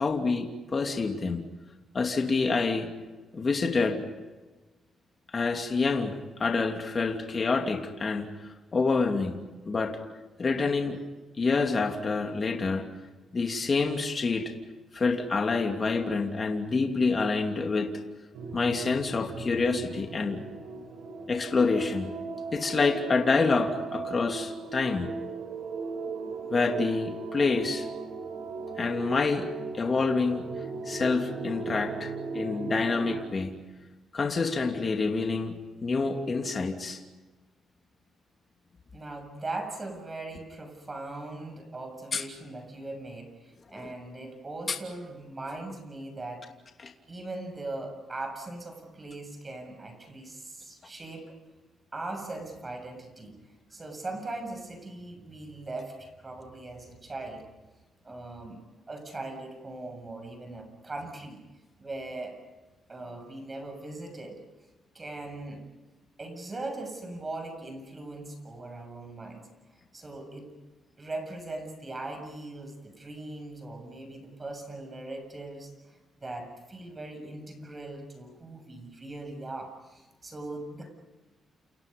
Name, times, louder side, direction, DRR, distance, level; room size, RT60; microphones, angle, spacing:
voice 1, 0.0-1.4 1.9-2.9 3.3-4.1 5.3-8.3 8.7-9.4 9.7-10.0 10.4-11.0 11.4-12.9 13.3-14.5 14.9-18.0 18.5-20.4 21.3-22.1 22.5-25.1 26.5-27.9 28.8-30.4 30.9-33.5 34.1-35.5 35.8-37.0 42.1-42.2 43.8-43.9 46.8-46.9, left 4 dB, 35° left, 3 dB, 2.9 m, -27 dB
sound 1, 18.3-33.3, right 4 dB, 85° right, 7.9 m, -37 dB
voice 2, 38.9-46.4 47.1-51.4 51.9-53.4 53.7-57.4 58.0-61.4 61.8-62.4 62.9-64.4 64.9-65.6 66.2-69.5 69.9-70.5 71.0-80.9, right 2 dB, 25° right, 5 dB, 7.3 m, -40 dB
29.5 x 29.5 x 5.4 m, 1.2 s
cardioid pair, 125°, 0 cm